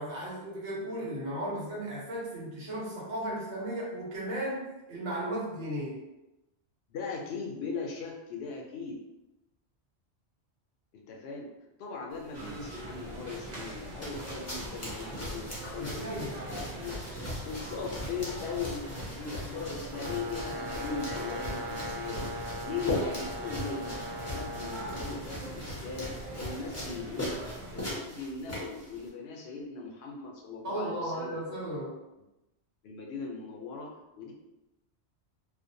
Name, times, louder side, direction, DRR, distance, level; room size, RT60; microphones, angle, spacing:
voice 1, 0.0-6.0 15.8-16.4 30.6-32.0, right 1 dB, 85° right, -6 dB, 1.2 m, -35 dB
voice 2, 6.9-9.0 10.9-11.5 11.8-17.0 17.4-22.3 22.6-24.0 24.2-27.4 27.7-31.4 32.8-33.9 34.2-34.3, left 4 dB, 70° left, -1 dB, 0.8 m, -39 dB
sound 1, 12.1-29.1, left 1 dB, 20° left, 0.5 m, -40 dB
sound 2, 12.3-27.8, right 2 dB, 50° right, 0.5 m, -43 dB
Brass instrument, 19.9-25.1, left 1 dB, 70° right, 1.0 m, -39 dB
2.4 x 2.1 x 2.6 m, 0.97 s
omnidirectional pair, 1.1 m